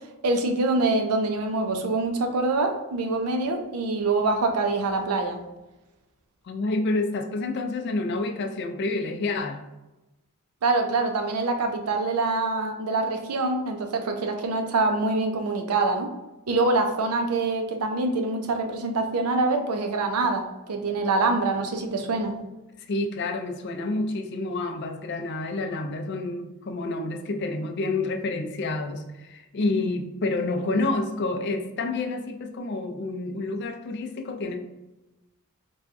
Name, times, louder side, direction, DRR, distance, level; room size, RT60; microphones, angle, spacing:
voice 1, 0.2-5.4 10.6-16.1 16.5-22.4, right 3 dB, 85° right, 5 dB, 0.5 m, -25 dB
voice 2, 6.4-9.6 22.9-34.6, left 2 dB, 50° left, 5 dB, 0.4 m, -28 dB
4.1 x 2.3 x 2.5 m, 1.0 s
head